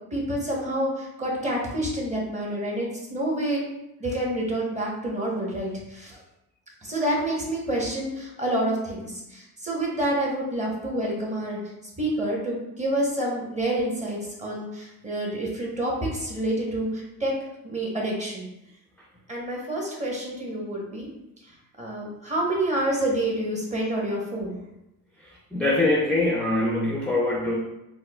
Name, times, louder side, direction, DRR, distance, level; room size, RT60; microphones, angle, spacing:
voice 1, 0.1-3.7 4.0-6.2 6.8-11.6 12.0-17.3 17.6-18.5 19.3-21.1 21.8-24.6, right 1 dB, 20° right, -3 dB, 0.9 m, -28 dB
voice 2, 25.2-27.5, left 2 dB, 5° left, -4 dB, 0.5 m, -23 dB
4.5 x 2.1 x 2.3 m, 0.89 s
cardioid pair, 110°, 35 cm